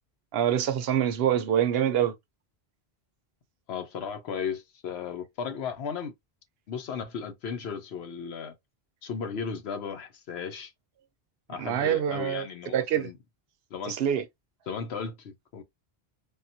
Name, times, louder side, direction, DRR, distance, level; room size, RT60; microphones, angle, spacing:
voice 1, 0.3-2.1 11.6-13.1 13.9-14.2, right 10 dB, 70° right, 0.8 m, -25 dB
voice 2, 3.7-6.1 6.7-8.6 9.0-10.7 11.5-13.2 13.7-14.0 14.7-15.6, left 6 dB, 75° left, 0.9 m, -35 dB
3.6 x 2.3 x 2.6 m
omnidirectional pair, 1.1 m